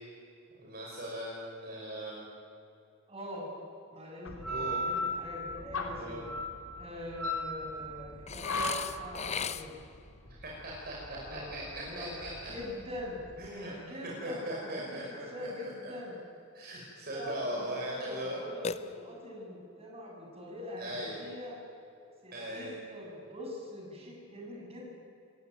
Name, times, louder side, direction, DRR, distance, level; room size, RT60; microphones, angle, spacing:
voice 1, 0.6-2.3 4.5-4.8 6.0-6.2 10.3-12.5 13.4-13.7 14.2-15.9 16.5-18.4 20.8-21.2 22.3-22.8, right 1 dB, 50° right, -4 dB, 5.4 m, -39 dB
voice 2, 3.1-3.5 3.9-6.3 6.8-9.7 11.2-12.2 12.5-13.2 13.8-16.2 17.0-21.6 22.2-24.9, left 1 dB, 30° right, -2 dB, 7.6 m, -43 dB
sound 1, 4.3-13.4, left 1 dB, 90° left, 3.5 m, -37 dB
Burping eructation, 8.3-10.0 18.6-19.4, left 6 dB, 30° left, 0.7 m, -37 dB
28.0 x 16.0 x 9.3 m, 2.7 s
head